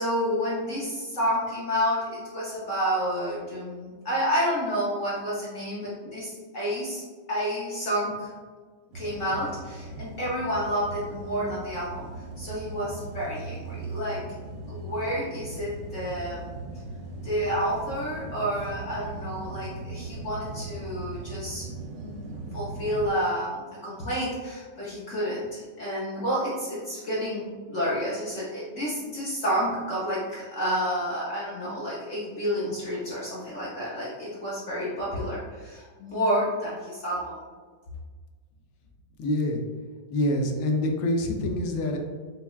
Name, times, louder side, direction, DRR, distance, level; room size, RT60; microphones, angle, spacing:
voice 1, 0.0-7.0 7.3-8.3 8.9-12.1 12.4-14.2 14.7-16.5 17.2-21.6 22.0-37.3, equal, 65° left, -7 dB, 0.7 m, -30 dB
sound 1, 8.9-23.1, right 2 dB, 75° right, 1.1 m, -39 dB
voice 2, 39.2-39.6 40.1-42.0, left 1 dB, 90° left, 2 dB, 1.4 m, -26 dB
5.7 x 2.2 x 2.3 m, 1.5 s
omnidirectional pair, 2.1 m